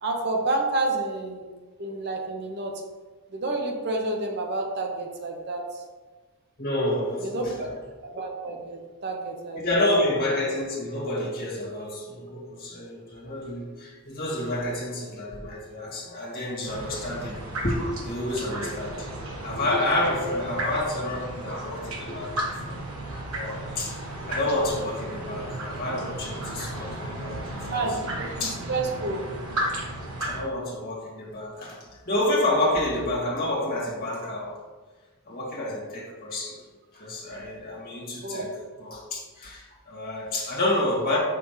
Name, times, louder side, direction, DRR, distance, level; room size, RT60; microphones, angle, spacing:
voice 1, 0.0-1.4 1.8-2.7 3.3-5.8 7.2-7.5 8.0-9.8 27.7-28.0 28.4-29.2 38.2-38.5, right 2 dB, 50° right, 2 dB, 0.9 m, -29 dB
voice 2, 6.6-7.7 9.6-19.1 19.4-22.4 22.7-22.8 23.3-27.4 27.7-27.8 28.4-28.5 29.5-29.6 30.2-34.6 35.3-36.6 36.9-38.5 38.8-41.2, left 1 dB, 45° left, -4 dB, 2.1 m, -29 dB
sound 1, 16.7-30.4, right 1 dB, 70° right, 1.4 m, -34 dB
6.8 x 6.0 x 3.1 m, 1.3 s
head